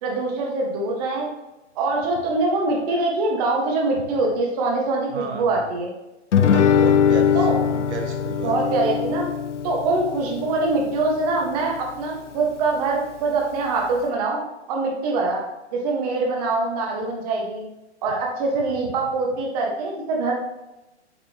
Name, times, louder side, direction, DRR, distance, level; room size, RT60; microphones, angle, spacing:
voice 1, 0.0-1.3 1.7-5.9 7.3-7.6 8.4-9.3 9.6-14.4 14.7-15.4 15.7-17.6 18.0-20.3, right 3 dB, 35° right, -1 dB, 1.5 m, -24 dB
voice 2, 5.1-5.6 6.3-8.7, right 5 dB, 75° right, 4 dB, 0.8 m, -33 dB
Guitar, 6.3-11.4, left 8 dB, 90° left, 0.6 m, -21 dB
7.6 x 5.2 x 2.9 m, 0.97 s
hypercardioid pair, 145°, 35 cm